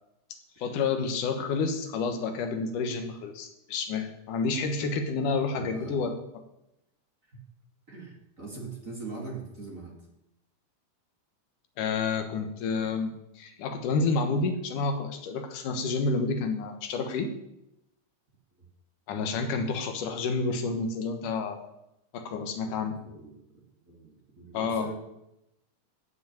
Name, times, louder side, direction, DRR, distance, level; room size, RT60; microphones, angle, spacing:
voice 1, 0.6-6.1 11.8-17.3 19.1-21.7 22.1-23.0 24.5-24.9, left 4 dB, 80° left, 7 dB, 2.9 m, -29 dB
voice 2, 5.5-6.0 7.2-7.4 7.9-10.0 22.7-23.4 23.8-24.9, right 4 dB, 30° right, 0 dB, 2.1 m, -42 dB
13.0 x 6.4 x 9.1 m, 0.86 s
omnidirectional pair, 3.6 m